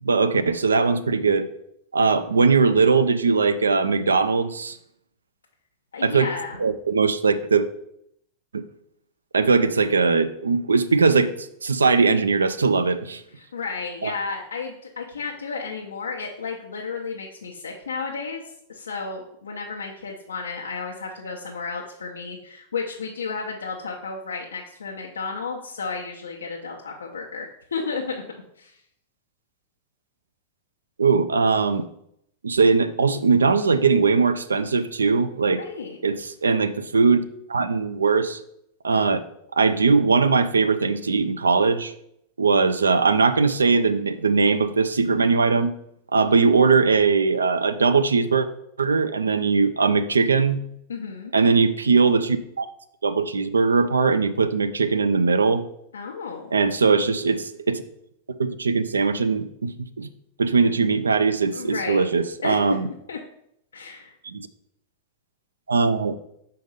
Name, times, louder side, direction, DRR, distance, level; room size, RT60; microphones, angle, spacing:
voice 1, 0.0-1.5 1.9-4.8 6.0-6.3 6.6-7.7 8.5-8.6 9.3-13.2 14.0-14.1 31.0-31.9 32.4-35.6 36.0-37.2 37.5-38.4 38.8-39.2 39.6-41.9 42.4-45.7 46.1-48.5 48.8-50.6 51.3-52.7 53.0-55.6 56.5-57.8 58.4-60.1 60.4-62.9 64.2-64.5 65.7-66.1, right 4 dB, 75° right, 11 dB, 0.4 m, -20 dB
voice 2, 5.9-6.6 13.4-18.4 18.7-28.2 28.6-28.8 35.6-36.0 50.9-51.3 55.9-56.5 61.5-62.1 62.4-62.8 63.1-63.2 63.7-64.1, left 4 dB, 70° left, -2 dB, 0.7 m, -32 dB
5.3 x 3.8 x 5.2 m, 0.74 s
figure-of-eight pair, 90°, 0 cm